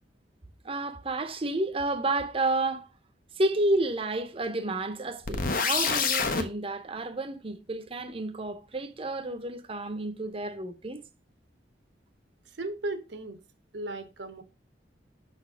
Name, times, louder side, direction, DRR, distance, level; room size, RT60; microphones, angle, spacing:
voice 1, 0.6-2.9 3.3-11.0, right 2 dB, 30° right, 0.7 m, -30 dB
sound 1, 5.3-6.5, left 5 dB, 50° left, 0.8 m, -26 dB
voice 2, 12.6-13.4 13.7-14.4, right 2 dB, 75° right, 1.0 m, -36 dB
6.2 x 4.2 x 4.5 m
head